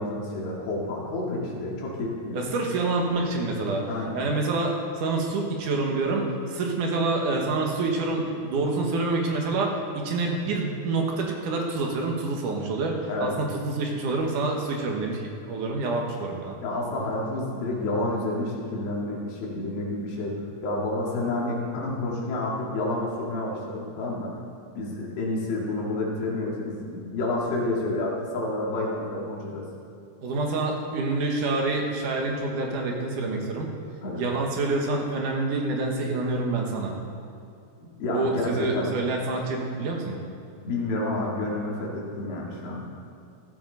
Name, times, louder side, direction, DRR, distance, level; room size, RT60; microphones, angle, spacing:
voice 1, 0.0-2.4 3.9-4.2 13.1-13.3 16.6-20.3 20.6-24.3 24.8-29.7 34.0-34.3 38.0-38.9 40.6-42.8, left 2 dB, 80° left, -3 dB, 4.2 m, -29 dB
voice 2, 2.3-12.9 13.2-16.6 30.2-33.7 34.2-36.9 38.1-40.2, right 3 dB, 65° right, 1 dB, 2.7 m, -27 dB
15.0 x 12.5 x 4.0 m, 2.5 s
omnidirectional pair, 4.4 m